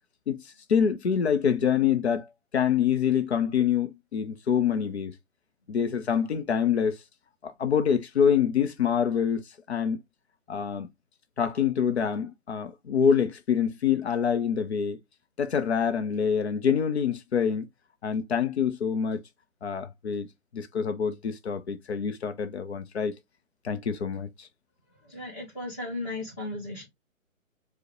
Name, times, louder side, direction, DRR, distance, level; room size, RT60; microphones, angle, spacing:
voice 1, 0.3-2.3 2.5-5.1 5.7-7.0 7.4-10.0 10.5-10.9 11.4-15.0 15.4-17.7 18.0-19.2 19.6-20.3 20.5-23.1 23.6-24.5, left 7 dB, 50° left, 0.6 m, -26 dB
voice 2, 25.0-26.8, left 2 dB, 10° left, 0.7 m, -35 dB
4.7 x 2.1 x 2.9 m
hypercardioid pair, 155°, 42 cm